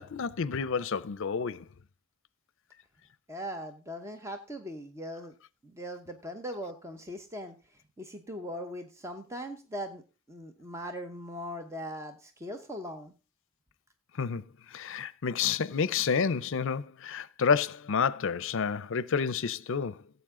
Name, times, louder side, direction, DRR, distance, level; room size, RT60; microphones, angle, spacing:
voice 1, 0.0-1.6 14.2-14.4 14.7-20.0, left 6 dB, 65° left, 0.6 m, -29 dB
voice 2, 3.3-5.3 5.6-7.5 8.0-10.0 10.3-13.1, equal, 15° right, 0.9 m, -40 dB
17.0 x 8.1 x 3.7 m
head